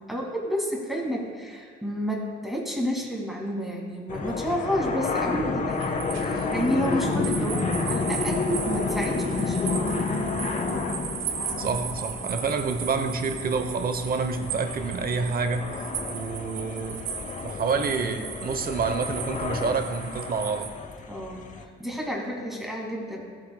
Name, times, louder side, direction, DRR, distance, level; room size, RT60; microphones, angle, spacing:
voice 1, 0.1-10.0 21.1-23.2, equal, ahead, -2 dB, 2.2 m, -30 dB
sound 1, 4.1-21.6, left 4 dB, 40° left, 0.8 m, -31 dB
sound 2, 5.7-20.7, right 8 dB, 80° right, 0.9 m, -37 dB
voice 2, 11.6-15.7 16.1-17.1 17.4-20.7, right 4 dB, 50° right, 8 dB, 0.8 m, -28 dB
14.0 x 8.0 x 2.2 m, 2.1 s
cardioid pair, 90°, 20 cm